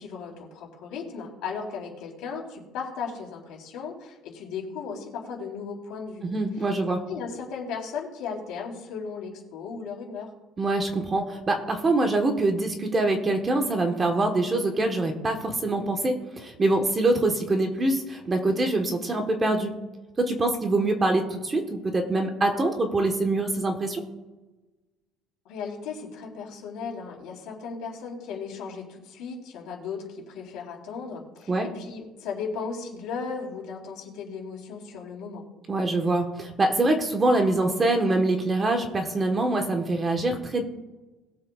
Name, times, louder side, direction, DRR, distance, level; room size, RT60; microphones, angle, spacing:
voice 1, 0.0-6.3 7.1-10.3 25.5-35.5, left 5 dB, 70° left, -1 dB, 3.6 m, -36 dB
voice 2, 6.2-7.0 10.6-19.8 20.2-24.0 31.5-31.7 35.7-40.6, right 2 dB, 20° right, 4 dB, 1.2 m, -24 dB
21.0 x 7.6 x 2.4 m, 1.1 s
cardioid pair, 150°, 0 cm